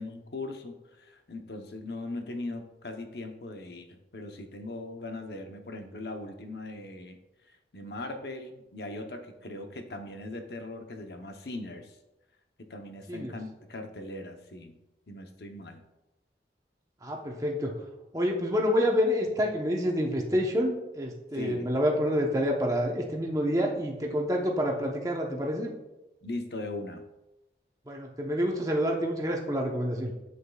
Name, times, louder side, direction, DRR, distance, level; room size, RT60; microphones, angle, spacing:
voice 1, 0.0-7.2 7.5-12.0 12.6-14.8 15.1-15.8 21.3-21.7 26.2-27.0, left 2 dB, 65° left, 5 dB, 0.8 m, -39 dB
voice 2, 17.0-17.7 18.1-25.7 27.9-30.1, equal, 20° right, 0 dB, 0.9 m, -28 dB
8.3 x 7.9 x 2.4 m, 0.98 s
head